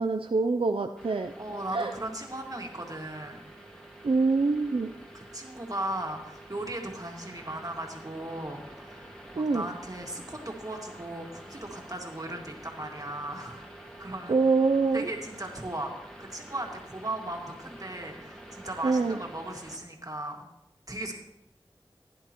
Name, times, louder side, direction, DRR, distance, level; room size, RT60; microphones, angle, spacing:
voice 1, 0.0-1.3 1.7-1.9 4.0-4.9 9.4-9.7 14.3-15.1 18.8-19.2, right 4 dB, 75° right, 6 dB, 0.5 m, -25 dB
sound 1, 1.0-19.8, right 1 dB, 5° left, 2.0 m, -48 dB
voice 2, 1.3-3.4 5.1-13.7 14.0-14.4 14.9-15.9 16.2-20.5 20.9-21.1, right 1 dB, 40° right, 1 dB, 1.9 m, -37 dB
16.0 x 10.5 x 3.0 m, 0.87 s
wide cardioid pair, 45°, 9 cm